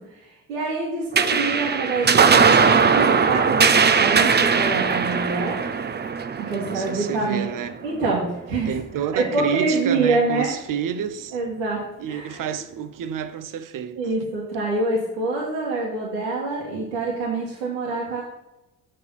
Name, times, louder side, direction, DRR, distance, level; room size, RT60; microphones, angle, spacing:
voice 1, 0.1-5.6 6.4-7.5 7.8-8.7 9.1-10.5 11.3-12.5 14.0-18.2, right 3 dB, 90° right, 1.7 m, -26 dB
sound 1, 1.1-7.9, right 5 dB, 25° right, 0.7 m, -19 dB
voice 2, 6.5-7.8 8.7-11.4 12.0-14.0, right 8 dB, 55° right, 0.9 m, -29 dB
6.6 x 6.5 x 5.5 m
hypercardioid pair, 55°, 38 cm